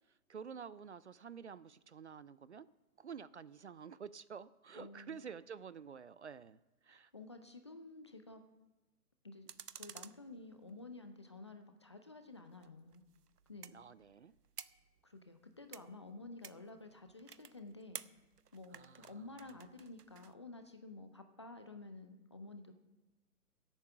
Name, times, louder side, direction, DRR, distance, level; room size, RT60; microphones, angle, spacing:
voice 1, 0.3-2.7 3.0-6.6 6.8-7.1 13.7-14.3 18.7-19.2, right 6 dB, 50° right, 18 dB, 0.5 m, -50 dB
voice 2, 4.7-5.2 6.9-8.4 9.2-9.5 9.8-13.0 13.5-13.7 15.0-18.0 18.5-22.7, left 2 dB, 20° left, 7 dB, 0.5 m, -52 dB
sound 1, 9.5-11.0 12.5-20.3, right 7 dB, 80° right, 0.8 m, -54 dB
16.5 x 8.9 x 5.7 m, 1.1 s
figure-of-eight pair, 140°, 46 cm